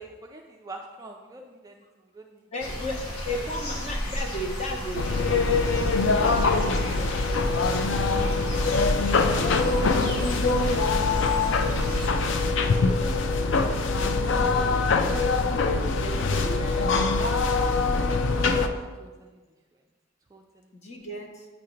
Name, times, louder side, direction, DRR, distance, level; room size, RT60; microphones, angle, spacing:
voice 1, 0.0-1.8 2.1-2.7 18.1-18.6 19.0-19.4 20.3-20.8, right 2 dB, 15° right, 1 dB, 0.3 m, -45 dB
voice 2, 2.5-5.8 6.2-8.8 9.1-10.6 11.4-15.2 16.0-16.9 20.7-21.5, equal, 30° left, 1 dB, 0.8 m, -37 dB
sound 1, 2.6-12.1, equal, 90° left, 1.0 m, -34 dB
sound 2, 4.9-18.7, left 3 dB, 60° left, 0.4 m, -23 dB
8.6 x 2.9 x 5.0 m, 1.3 s
head